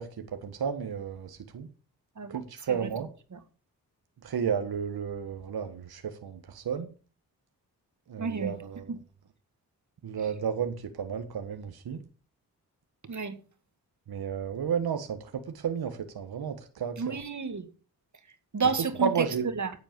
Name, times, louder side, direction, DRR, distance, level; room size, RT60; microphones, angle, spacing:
voice 1, 0.0-1.7 2.3-3.1 4.2-6.9 8.1-8.9 10.0-12.0 14.1-17.2 19.0-19.5, right 7 dB, 65° right, 1.6 m, -32 dB
voice 2, 8.2-8.6 8.9-9.0 10.2-10.3 13.0-13.4 17.0-17.7 18.5-19.3 19.6-19.7, right 5 dB, 45° right, 2.2 m, -31 dB
9.4 x 8.1 x 6.9 m
supercardioid pair, 50°, 40 cm